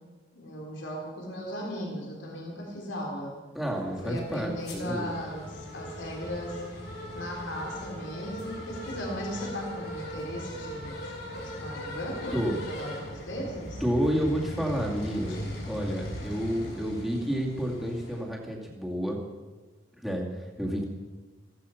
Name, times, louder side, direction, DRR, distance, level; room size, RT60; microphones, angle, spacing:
voice 1, 0.3-3.3 4.0-6.6 7.1-13.8 15.1-15.6, equal, 80° left, -1 dB, 3.7 m, -37 dB
voice 2, 3.5-5.1 12.3-12.6 13.8-15.4 15.7-19.2 20.0-20.8, equal, ahead, -3 dB, 2.3 m, -30 dB
sound 1, 3.6-18.2, equal, 55° left, 5.7 m, -39 dB
15.5 x 15.0 x 5.8 m, 1.3 s
head